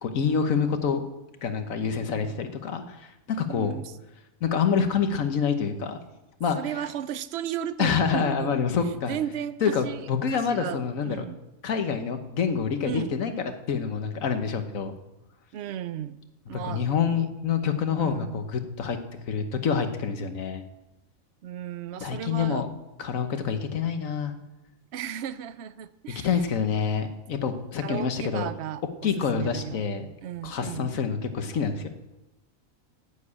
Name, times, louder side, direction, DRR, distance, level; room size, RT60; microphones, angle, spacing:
voice 1, 0.0-1.0 1.4-3.7 4.4-6.0 6.4-6.6 7.8-9.2 9.6-11.2 11.6-14.9 16.5-19.0 19.3-20.6 22.0-22.7 23.0-24.3 26.1-28.5 29.0-30.1 30.4-31.9, left 6 dB, 70° left, 8 dB, 1.4 m, -27 dB
voice 2, 3.5-3.9 6.5-8.6 9.0-11.4 12.8-13.1 15.5-17.3 18.0-18.4 21.4-22.6 24.9-26.3 27.8-29.8 30.2-30.9, right 10 dB, 60° right, 15 dB, 0.8 m, -35 dB
9.7 x 9.1 x 8.5 m, 0.99 s
omnidirectional pair, 1.4 m